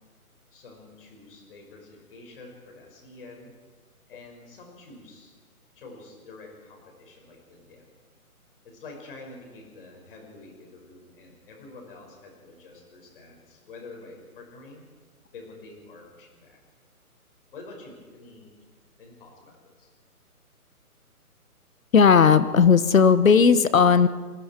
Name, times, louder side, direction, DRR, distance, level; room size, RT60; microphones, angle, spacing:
voice 1, 0.5-3.5 4.1-5.4 5.7-7.9 8.6-14.8 15.3-16.6 17.5-18.5 19.0-19.9, left 3 dB, 35° left, 1 dB, 5.8 m, -47 dB
voice 2, 21.9-24.1, left 6 dB, 60° left, 13 dB, 1.3 m, -16 dB
28.5 x 22.0 x 4.6 m, 1.5 s
hypercardioid pair, 165°, 45 cm